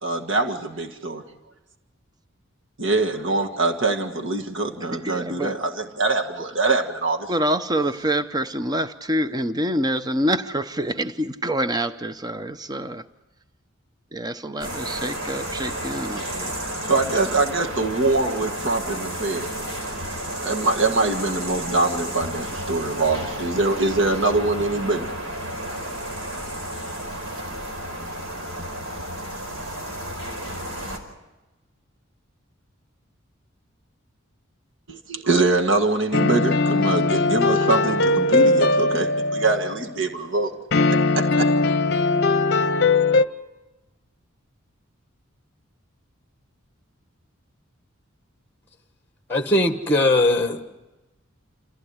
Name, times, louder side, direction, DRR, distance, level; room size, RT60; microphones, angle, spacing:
voice 1, 0.0-1.2 2.8-7.3 16.8-19.5 19.8-20.1 20.4-25.1 26.1-26.4 34.9-40.5 40.9-41.5, right 2 dB, 60° right, 4 dB, 1.8 m, -24 dB
voice 2, 4.8-5.6 7.3-13.1 14.1-16.5, right 1 dB, 20° right, 11 dB, 0.7 m, -26 dB
sound 1, 14.6-31.0, right 1 dB, 80° right, 4.9 m, -32 dB
sound 2, 36.1-39.8 40.7-43.3, left 3 dB, 55° left, 0.8 m, -20 dB
voice 3, 49.3-50.6, left 1 dB, 10° left, 5 dB, 1.4 m, -20 dB
28.5 x 15.5 x 9.6 m, 1.1 s
head